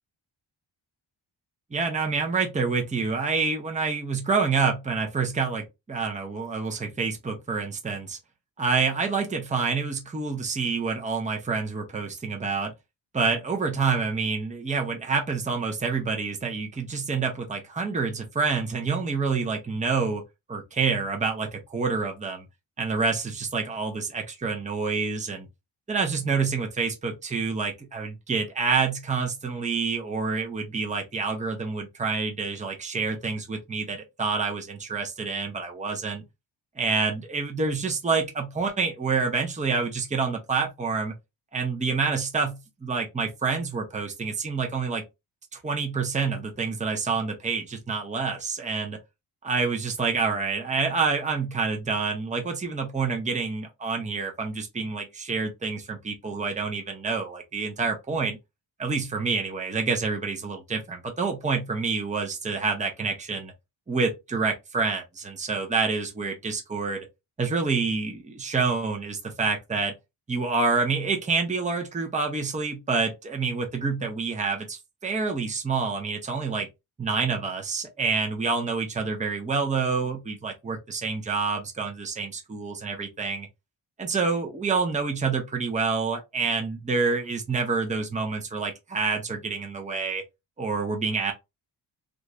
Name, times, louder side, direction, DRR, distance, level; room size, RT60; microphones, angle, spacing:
voice 1, 1.7-8.2 8.6-12.7 13.1-20.2 20.5-22.4 22.8-25.5 25.9-36.2 36.8-41.1 41.5-45.0 45.5-49.0 49.4-58.4 58.8-63.5 63.9-67.1 67.4-69.9 70.3-76.7 77.0-83.5 84.0-90.2 90.6-91.3, right 4 dB, 15° right, 0.7 m, -27 dB
2.5 x 2.5 x 3.0 m
cardioid pair, 85°, 48 cm